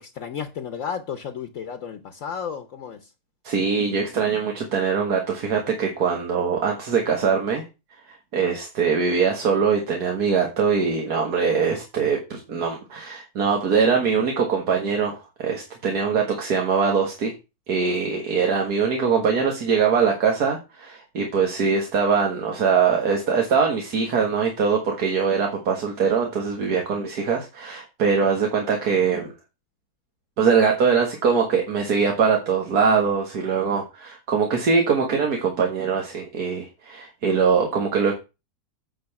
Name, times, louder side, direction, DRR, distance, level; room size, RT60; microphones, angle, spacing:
voice 1, 0.0-3.0, left 7 dB, 60° left, 1.1 m, -33 dB
voice 2, 3.4-7.6 8.1-17.3 17.7-29.3 30.4-38.1, right 5 dB, 85° right, 2.1 m, -22 dB
9.3 x 4.9 x 5.9 m
omnidirectional pair, 1.6 m